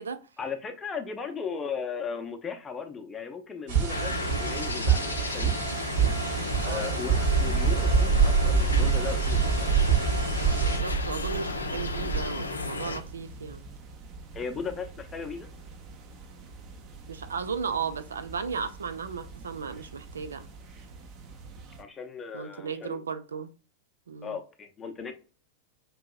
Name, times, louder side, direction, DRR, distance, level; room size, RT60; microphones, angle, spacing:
voice 1, 0.4-4.1 4.4-5.5 6.6-9.7 14.3-15.5 21.8-23.0 24.2-25.1, left 6 dB, 20° left, 0.6 m, -37 dB
sound 1, 3.7-10.8, right 7 dB, 50° right, 1.6 m, -29 dB
sound 2, 3.9-13.0, left 3 dB, 75° left, 0.4 m, -34 dB
voice 2, 6.6-7.0 10.5-13.6 17.1-20.5 22.3-23.5 24.1-24.4, right 6 dB, 70° right, 0.4 m, -35 dB
sound 3, 7.1-21.8, right 5 dB, 35° right, 0.7 m, -30 dB
5.3 x 2.7 x 2.3 m
figure-of-eight pair, 90°, 0 cm